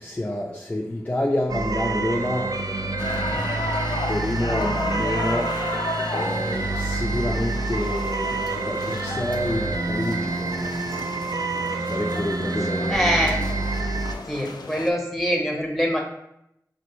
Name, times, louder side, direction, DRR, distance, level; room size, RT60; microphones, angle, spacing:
voice 1, 0.0-3.5 4.1-11.1 11.3-11.5 11.8-13.3, left 1 dB, 20° left, -2 dB, 0.4 m, -29 dB
sound 1, 1.5-14.1, right 3 dB, 60° right, 0.4 m, -28 dB
sound 2, 3.0-14.9, left 3 dB, 85° left, 0.3 m, -33 dB
voice 2, 12.6-13.4 14.3-16.0, equal, ahead, 0 dB, 1.0 m, -24 dB
4.2 x 2.7 x 3.0 m, 0.80 s
wide cardioid pair, 50°, 7 cm